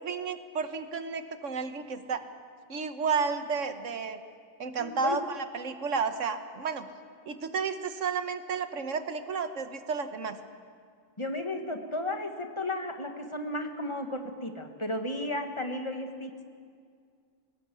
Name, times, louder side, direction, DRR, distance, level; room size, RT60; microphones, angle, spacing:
voice 1, 0.0-2.2 2.7-4.2 4.6-6.9 7.3-10.4, right 5 dB, 75° right, 9 dB, 1.5 m, -32 dB
voice 2, 4.8-5.2 11.2-16.3, left 1 dB, 25° left, 4 dB, 1.6 m, -34 dB
20.0 x 18.0 x 8.4 m, 2.1 s
omnidirectional pair, 1.3 m